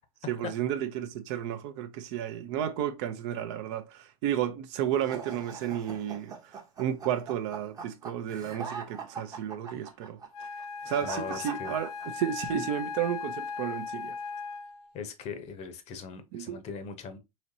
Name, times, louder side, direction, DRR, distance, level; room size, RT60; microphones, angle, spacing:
voice 1, 0.3-10.2 10.9-11.9 12.2-14.2 16.3-16.6, right 10 dB, 50° right, 0.6 m, -32 dB
sound 1, 5.0-12.4, right 5 dB, 20° right, 0.8 m, -42 dB
Wind instrument woodwind instrument, 10.3-14.9, left 5 dB, 85° left, 0.9 m, -38 dB
voice 2, 11.0-11.7 14.9-17.2, left 5 dB, 35° left, 0.8 m, -39 dB
4.0 x 3.0 x 2.7 m
hypercardioid pair, 115°, 19 cm